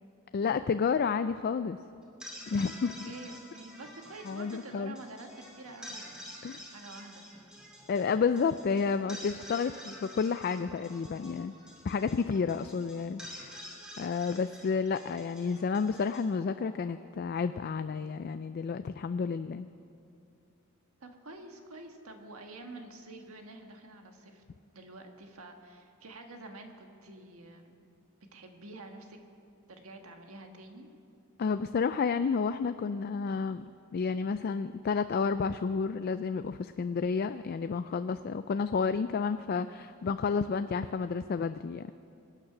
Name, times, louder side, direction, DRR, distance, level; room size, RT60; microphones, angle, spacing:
voice 1, 0.3-1.8 2.5-2.9 4.3-4.9 6.4-6.6 7.9-11.5 11.8-13.6 14.0-19.7 31.4-33.7 33.9-41.9, left 5 dB, 45° left, 11 dB, 0.3 m, -30 dB
sound 1, 2.0-17.3, left 1 dB, 5° right, 2.4 m, -49 dB
voice 2, 2.8-7.2 21.0-24.4 24.7-27.7 28.3-29.2 29.7-30.9, right 2 dB, 80° right, 4 dB, 1.6 m, -48 dB
24.5 x 9.1 x 6.0 m, 2.6 s
head